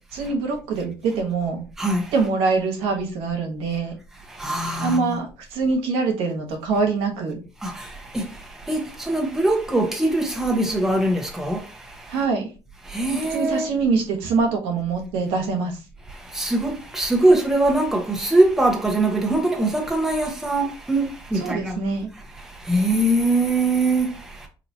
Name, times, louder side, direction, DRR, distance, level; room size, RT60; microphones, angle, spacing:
voice 1, 0.1-1.6 2.1-4.0 4.8-7.4 12.1-12.5 13.1-15.8 21.4-22.1, right 4 dB, 90° right, 1.1 m, -24 dB
voice 2, 1.8-2.1 4.3-5.2 7.6-12.2 12.8-13.7 16.1-21.8 22.3-24.5, right 2 dB, 5° right, 0.9 m, -22 dB
4.1 x 2.8 x 2.8 m
cardioid pair, 115°, 9 cm